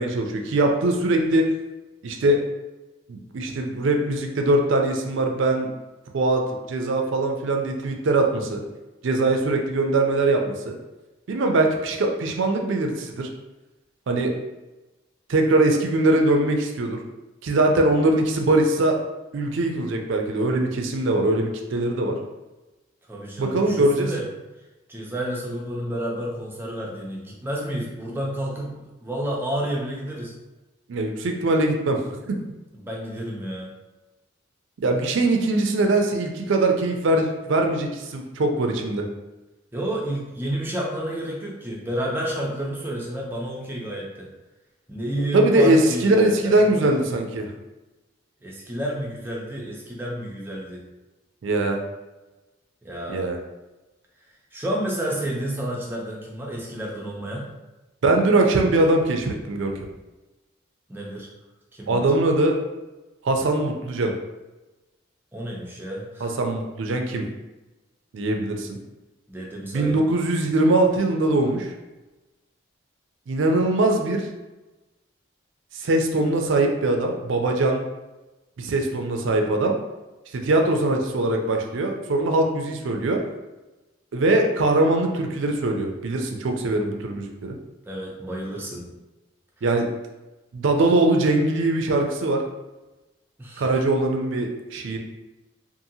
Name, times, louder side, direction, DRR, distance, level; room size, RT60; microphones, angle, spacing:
voice 1, 0.0-1.5 2.0-2.4 3.1-5.7 6.1-8.6 9.0-10.8 11.3-13.3 14.1-14.3 15.3-17.0 17.4-19.0 19.3-22.2 23.4-24.1 30.9-32.3 34.8-39.1 45.3-47.5 51.4-51.8 53.1-53.4 58.0-59.7 61.9-62.6 63.2-64.1 66.2-67.3 68.1-68.8 69.7-71.7 73.3-74.3 75.7-77.8 78.6-79.8 80.3-83.2 84.1-87.6 89.6-89.9 90.5-92.4 93.6-95.0, right 2 dB, 65° right, 3 dB, 0.4 m, -22 dB
voice 2, 23.1-24.3 24.9-30.3 32.7-33.7 39.7-44.3 44.9-47.1 48.4-50.8 52.8-53.3 54.5-57.5 60.9-61.3 61.7-62.1 65.3-66.4 69.3-70.0 87.9-89.0 93.4-93.7, right 1 dB, 10° right, -3 dB, 0.5 m, -30 dB
2.7 x 2.5 x 2.7 m, 1.1 s
head